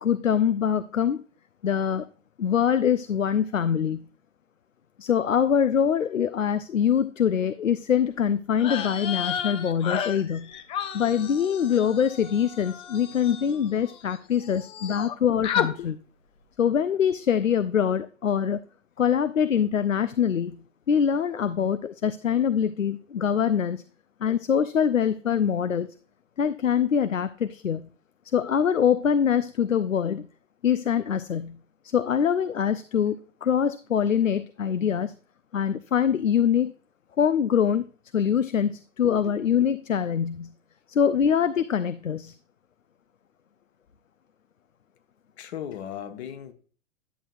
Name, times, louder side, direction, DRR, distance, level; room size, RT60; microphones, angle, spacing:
voice 1, 0.0-1.2 1.6-2.1 2.4-4.0 5.0-10.5 10.9-15.9 16.6-18.6 19.0-20.6 20.9-23.8 24.2-25.9 26.4-27.9 28.3-30.3 30.6-31.6 31.8-35.1 35.5-36.7 37.2-37.9 38.1-40.5 40.9-42.3, left 8 dB, 90° left, 13 dB, 0.5 m, -24 dB
sound 1, 8.5-14.2 14.4-15.1 15.4-15.7, left 8 dB, 15° left, 0.4 m, -32 dB
voice 2, 39.1-39.4 45.4-46.5, left 9 dB, 55° left, 7 dB, 1.2 m, -38 dB
10.0 x 7.6 x 2.5 m, 0.42 s
figure-of-eight pair, 95°, 38 cm